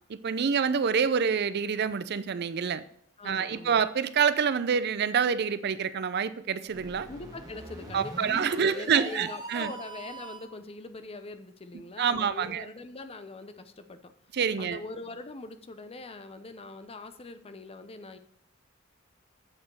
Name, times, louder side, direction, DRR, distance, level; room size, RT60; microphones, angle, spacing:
voice 1, 0.1-2.8 3.2-7.1 7.9-9.7 12.0-12.7 14.3-14.8, right 6 dB, 50° right, 14 dB, 0.5 m, -27 dB
voice 2, 3.2-3.8 7.1-14.1 14.6-18.2, left 3 dB, 30° left, 10 dB, 0.6 m, -42 dB
sound 1, 6.7-10.6, right 2 dB, 20° right, 1.6 m, -41 dB
8.5 x 5.0 x 6.6 m, 0.67 s
head